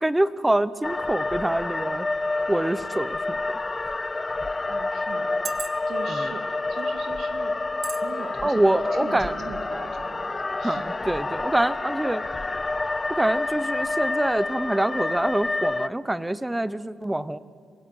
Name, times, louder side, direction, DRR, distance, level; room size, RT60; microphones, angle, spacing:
voice 1, 0.0-2.1 2.5-3.4 6.1-6.3 8.4-9.3 10.6-12.2 13.2-17.4, right 1 dB, 10° right, 16 dB, 0.8 m, -25 dB
sound 1, 0.8-15.9, left 3 dB, 25° left, 0.5 m, -28 dB
sound 2, 3.3-3.5 4.3-4.4 5.2-6.1 6.8-7.0 7.8-8.1 8.5-8.6, right 6 dB, 50° right, 1.2 m, -36 dB
voice 2, 4.7-5.4 5.9-7.6 8.0-10.8, right 5 dB, 70° right, 6 dB, 2.6 m, -40 dB
25.5 x 16.5 x 9.3 m, 2.1 s
cardioid pair, 85°, 0 cm